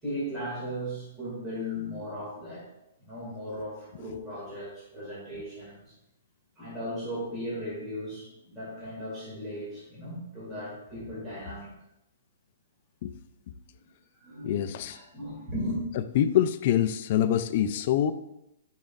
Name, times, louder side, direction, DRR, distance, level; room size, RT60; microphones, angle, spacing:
voice 1, 0.0-2.6 3.0-5.9 6.6-11.7 13.7-13.9 14.2-15.8, equal, 10° right, -9 dB, 2.1 m, -37 dB
voice 2, 14.4-15.0 16.1-18.1, left 10 dB, 35° left, 11 dB, 0.3 m, -25 dB
9.3 x 5.0 x 2.4 m, 0.85 s
hypercardioid pair, 175°, 0 cm